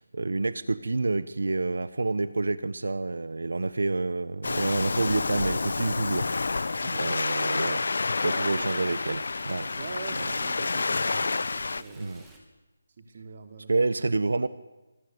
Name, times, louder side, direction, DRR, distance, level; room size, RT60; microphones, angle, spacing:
voice 1, 0.0-7.8 8.2-9.8 10.2-10.3 12.0-12.2 13.7-14.5, right 3 dB, 80° right, 14 dB, 1.3 m, -28 dB
Waves surf, 4.4-11.8, left 3 dB, 65° left, 1.0 m, -29 dB
Stream, 6.5-12.4, right 2 dB, 5° right, 3.1 m, -53 dB
voice 2, 8.3-8.7 9.8-11.4 11.7-12.2 13.0-13.7, right 4 dB, 35° right, 5 dB, 3.7 m, -43 dB
26.0 x 24.0 x 8.2 m, 1.1 s
hypercardioid pair, 175°, 0 cm